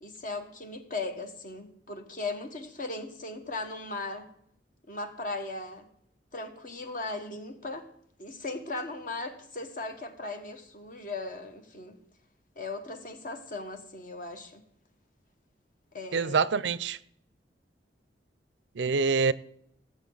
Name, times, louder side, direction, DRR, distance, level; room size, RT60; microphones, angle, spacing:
voice 1, 0.0-4.3 4.9-5.9 6.3-7.9 8.2-12.0 12.5-14.6 15.9-16.5, left 2 dB, 50° left, 1.5 m, -38 dB
voice 2, 16.1-17.0 18.8-19.3, right 5 dB, 80° right, 0.5 m, -25 dB
18.0 x 7.9 x 4.0 m
head